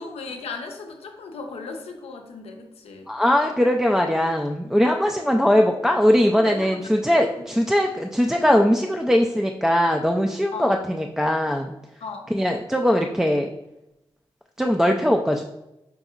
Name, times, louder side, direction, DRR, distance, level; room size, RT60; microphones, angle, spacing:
voice 1, 0.0-3.1 5.5-5.7 6.4-6.9 10.5-10.7 12.0-12.3, left 4 dB, 85° left, 4 dB, 0.6 m, -36 dB
voice 2, 3.1-11.7 12.3-13.5 14.6-15.4, equal, 5° right, 2 dB, 0.3 m, -20 dB
5.1 x 2.7 x 2.4 m, 0.91 s
cardioid pair, 45°, 10 cm